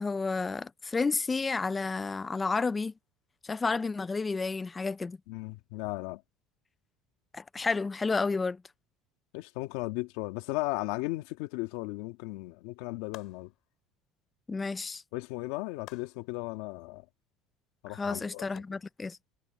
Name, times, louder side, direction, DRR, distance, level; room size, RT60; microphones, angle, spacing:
voice 1, 0.0-2.9 3.4-5.2 7.3-8.6 14.5-15.0 17.9-19.2, left 4 dB, 15° left, 0.5 m, -31 dB
voice 2, 5.3-6.2 9.3-13.5 15.1-17.0 17.8-18.5, left 20 dB, 80° left, 2.0 m, -36 dB
sound 1, 13.1-13.7 15.8-16.4 18.5-18.6, left 17 dB, 60° left, 4.6 m, -50 dB
cardioid pair, 125°, 0 cm